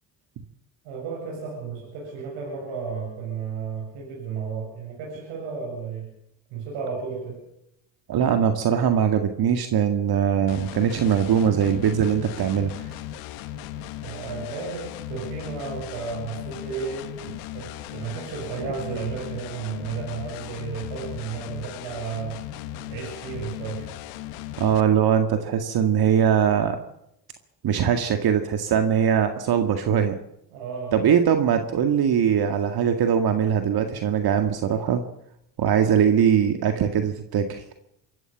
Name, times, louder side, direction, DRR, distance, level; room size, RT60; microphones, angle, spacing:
voice 1, 0.8-6.1 6.5-7.4 14.0-17.1 17.5-22.4 22.9-24.0 30.5-31.1, right 5 dB, 80° right, -2 dB, 8.0 m, -33 dB
voice 2, 8.1-12.7 24.6-26.8 27.6-30.2 30.9-35.0 35.6-37.6, right 8 dB, 55° right, 7 dB, 2.0 m, -21 dB
sound 1, 10.5-24.8, left 12 dB, 85° left, 1.4 m, -37 dB
26.0 x 14.0 x 7.2 m, 0.79 s
supercardioid pair, 75°, 45 cm